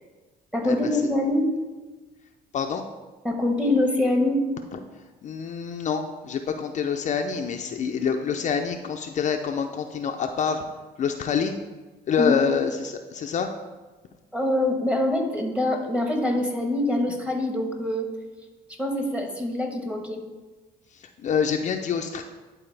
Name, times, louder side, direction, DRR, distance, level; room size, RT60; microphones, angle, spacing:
voice 1, 0.5-1.5 3.2-4.4 12.2-12.5 14.3-18.1 18.7-20.2, left 1 dB, 5° right, 2 dB, 1.2 m, -24 dB
voice 2, 2.5-2.8 4.7-4.8 5.2-10.6 11.0-11.6 12.1-13.5 20.9-22.2, left 6 dB, 45° left, 4 dB, 0.5 m, -26 dB
11.0 x 4.2 x 3.3 m, 1.3 s
cardioid pair, 110°, 17 cm